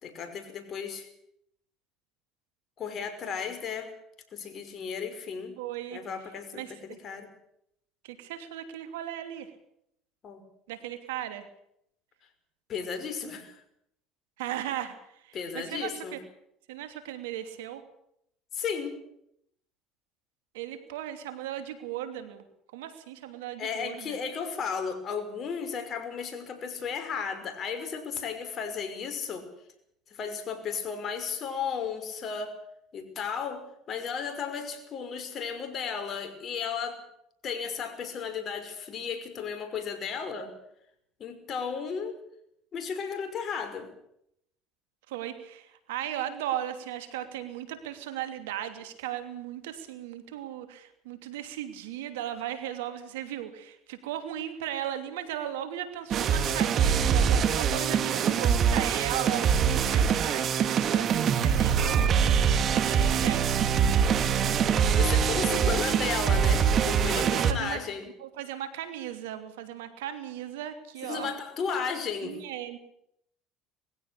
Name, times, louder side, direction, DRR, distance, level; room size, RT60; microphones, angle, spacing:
voice 1, 0.0-1.1 2.8-3.9 4.3-5.6 5.9-7.3 10.2-10.4 12.7-13.5 15.3-16.2 18.5-19.0 23.6-29.5 30.1-32.5 32.9-37.0 37.4-40.5 41.2-42.2 42.7-43.9 64.2-64.3 64.9-68.1 71.0-72.4, left 6 dB, 45° left, 7 dB, 5.7 m, -34 dB
voice 2, 5.6-6.0 6.5-7.0 8.0-9.5 10.7-11.5 14.4-15.0 15.5-16.2 16.7-17.8 20.5-22.4 22.7-24.2 45.1-62.1 62.6-63.7 67.1-67.8 68.2-71.3 72.2-72.8, right 11 dB, 85° right, 9 dB, 2.9 m, -37 dB
sound 1, 56.1-67.5, right 7 dB, 50° right, 2.2 m, -24 dB
21.0 x 16.0 x 8.5 m, 0.74 s
supercardioid pair, 85°, 0 cm